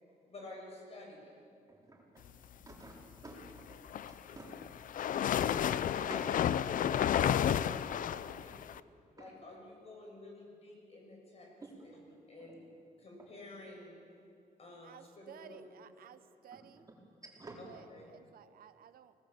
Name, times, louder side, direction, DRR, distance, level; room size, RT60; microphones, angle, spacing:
voice 1, 0.2-1.4 8.4-8.5 9.2-11.5 11.8-12.7 13.0-13.9 14.6-15.6 17.6-18.1, left 2 dB, 45° left, 0 dB, 6.5 m, -51 dB
voice 2, 1.7-2.3 2.5-2.9 3.2-4.5 5.2-5.4 6.0-6.2 8.3-8.4 9.2-9.3 11.6-11.7 12.4-12.5 16.5-16.6 17.2-17.6, right 3 dB, 25° right, -2 dB, 4.5 m, -52 dB
sound 1, 3.7-8.8, left 9 dB, 65° left, 0.5 m, -31 dB
voice 3, 14.8-16.9 17.7-19.1, right 9 dB, 85° right, 11 dB, 0.9 m, -55 dB
25.5 x 18.5 x 7.2 m, 2.4 s
wide cardioid pair, 140°, 15 cm